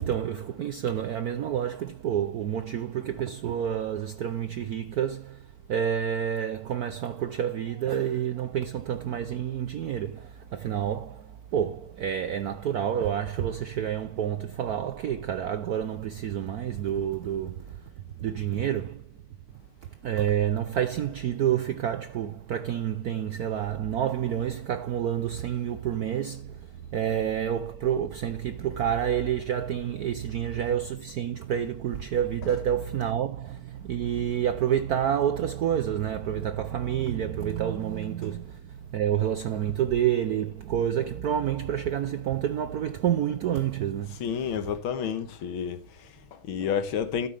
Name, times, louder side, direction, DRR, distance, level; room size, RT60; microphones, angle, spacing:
voice 1, 0.0-19.1 19.9-44.7, right 9 dB, 75° right, 0.8 m, -29 dB
voice 2, 44.2-47.3, left 7 dB, 70° left, 1.9 m, -30 dB
12.5 x 9.3 x 3.3 m
omnidirectional pair, 2.4 m